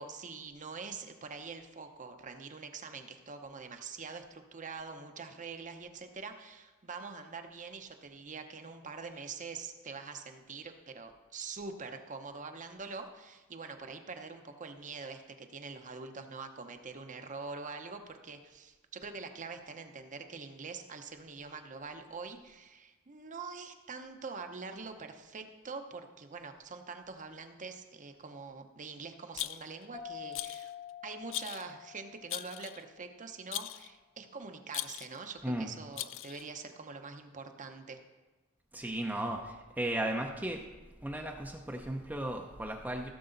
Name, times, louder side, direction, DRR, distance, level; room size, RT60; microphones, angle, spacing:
voice 1, 0.0-30.7 31.0-38.0, right 4 dB, 35° right, 6 dB, 0.8 m, -44 dB
Rattle, 29.3-29.9 30.3-30.7 31.3-31.7 32.3-32.8 33.5-33.9 34.7-35.2 36.0-36.5, left 14 dB, 60° left, 0.4 m, -39 dB
sound 1, 29.9-33.2, left 9 dB, 30° left, 1.1 m, -47 dB
voice 2, 38.7-40.6 41.0-43.1, right 1 dB, 10° right, 1 dB, 0.6 m, -35 dB
16.5 x 6.8 x 3.9 m, 1.2 s
head